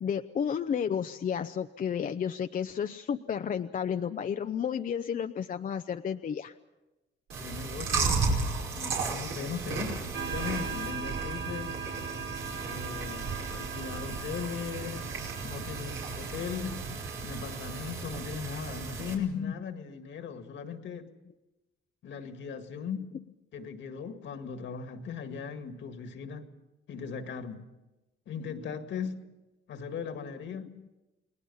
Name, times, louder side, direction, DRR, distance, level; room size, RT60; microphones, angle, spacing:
voice 1, 0.0-6.5 14.8-14.9 19.3-19.5, left 7 dB, 45° left, 0.6 m, -32 dB
Chewing mastication, 7.3-19.1, right 4 dB, 85° right, 5.1 m, -34 dB
voice 2, 7.4-8.3 8.8-11.8 12.7-15.1 15.4-16.8 17.2-21.1 22.0-23.1 23.5-26.5 26.9-27.7 28.3-29.2 29.7-30.8, left 6 dB, 70° left, 2.0 m, -38 dB
sound 1, 10.1-18.3, right 6 dB, 65° right, 1.5 m, -41 dB
29.5 x 19.5 x 5.5 m
cardioid pair, 90°, 20 cm